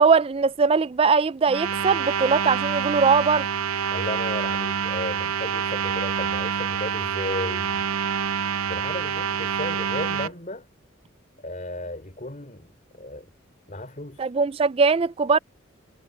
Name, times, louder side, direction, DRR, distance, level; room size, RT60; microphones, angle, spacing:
voice 1, 0.0-3.5 14.2-15.4, right 5 dB, 25° right, 0.3 m, -20 dB
sound 1, 1.5-10.3, right 7 dB, 80° right, 0.5 m, -27 dB
voice 2, 3.9-7.8 8.7-10.7 11.4-13.3 13.7-14.3, left 1 dB, 35° left, 3.7 m, -34 dB
head